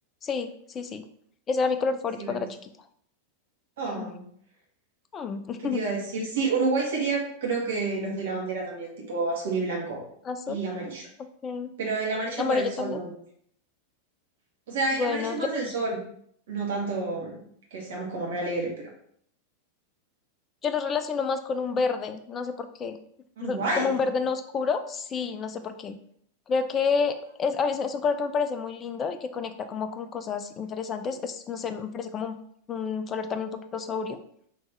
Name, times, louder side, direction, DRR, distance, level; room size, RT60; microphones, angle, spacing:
voice 1, 0.2-1.0 1.5-2.7 4.0-4.1 5.1-5.8 10.2-10.6 11.4-11.7 12.4-13.0 15.0-15.6 20.6-23.0 23.4-26.0 26.5-32.4 32.7-34.2, left 5 dB, 25° left, 9 dB, 0.4 m, -29 dB
voice 2, 3.8-4.2 5.6-10.0 10.5-11.1 11.8-13.1 14.7-16.0 16.5-17.4 17.7-18.7 23.4-23.9, right 3 dB, 60° right, -2 dB, 1.2 m, -29 dB
3.5 x 2.9 x 4.1 m, 0.65 s
figure-of-eight pair, 90°, 0 cm